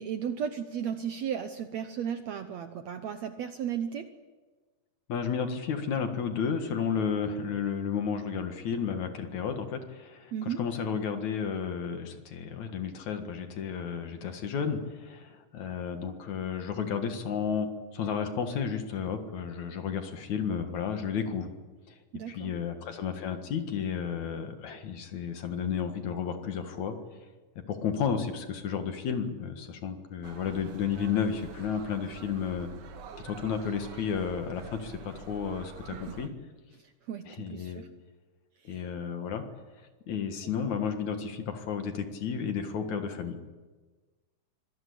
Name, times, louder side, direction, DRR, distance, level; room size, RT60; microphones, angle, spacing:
voice 1, 0.0-4.1 10.3-10.6 22.1-22.5 35.9-36.2 36.8-37.9 38.6-38.9, right 8 dB, 65° right, 8 dB, 1.9 m, -35 dB
voice 2, 5.1-21.5 21.9-22.0 22.3-27.0 27.7-32.7 33.2-36.3 37.3-37.8 38.6-39.4 40.1-43.4, left 7 dB, 60° left, 6 dB, 3.0 m, -32 dB
sound 1, 30.2-36.3, right 5 dB, 85° right, 0.9 m, -47 dB
25.0 x 17.5 x 8.5 m, 1.3 s
omnidirectional pair, 3.9 m